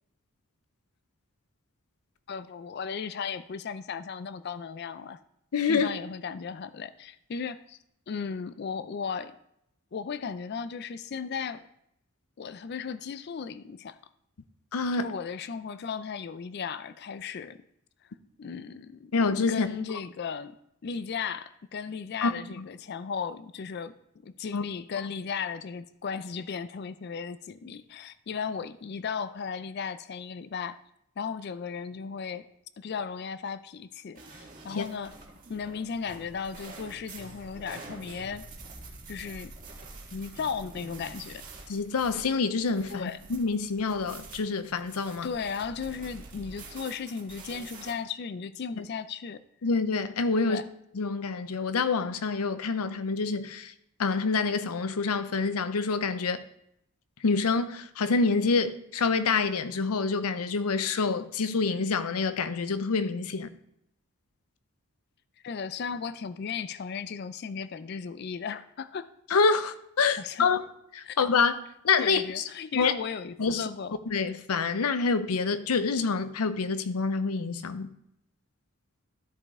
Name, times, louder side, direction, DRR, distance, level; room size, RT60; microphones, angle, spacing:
voice 1, 2.3-5.2 5.7-7.8 8.1-9.3 9.9-11.6 12.4-14.0 14.9-17.6 18.4-19.2 19.5-20.5 20.8-23.9 24.2-30.8 31.2-32.5 32.8-35.1 35.5-38.5 39.1-39.5 40.1-41.4 42.9-43.2 45.2-49.4 50.4-50.7 65.4-69.1 70.2-70.5 71.0-71.2 72.0-73.9, left 6 dB, 50° left, 14 dB, 0.4 m, -36 dB
voice 2, 5.5-5.9 14.7-15.1 19.1-19.7 22.2-22.6 24.5-24.6 34.7-34.8 41.7-45.3 49.6-50.6 50.9-53.7 54.0-56.4 57.2-63.5 69.3-70.6 70.9-71.6 71.8-72.4 72.8-72.9 73.4-73.7 74.1-77.9, left 4 dB, 85° left, 12 dB, 0.6 m, -27 dB
sound 1, 34.2-47.9, right 3 dB, 35° right, 1.6 m, -47 dB
13.0 x 5.0 x 3.6 m, 0.77 s
head